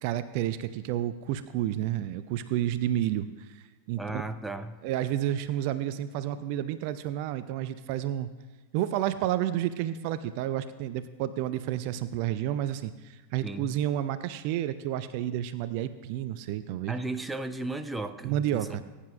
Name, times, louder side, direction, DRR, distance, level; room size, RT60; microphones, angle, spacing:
voice 1, 0.0-4.2 4.8-8.3 8.7-16.9 18.2-18.8, right 12 dB, 45° right, 13 dB, 0.4 m, -30 dB
voice 2, 4.0-4.8 13.4-13.7 16.9-18.8, right 2 dB, 5° right, 10 dB, 0.6 m, -35 dB
20.5 x 9.8 x 2.5 m, 1.2 s
figure-of-eight pair, 90°, 0 cm